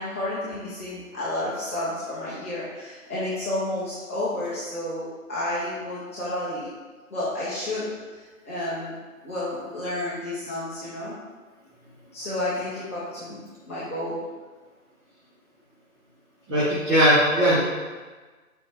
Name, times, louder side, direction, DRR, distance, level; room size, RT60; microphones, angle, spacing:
voice 1, 0.0-6.7 7.1-8.9 9.2-11.1 12.1-13.4 13.7-14.2, left 1 dB, 10° left, -12 dB, 1.1 m, -31 dB
voice 2, 16.5-17.6, equal, 20° right, -12 dB, 1.7 m, -19 dB
6.9 x 5.8 x 4.7 m, 1.4 s
figure-of-eight pair, 155°, 42 cm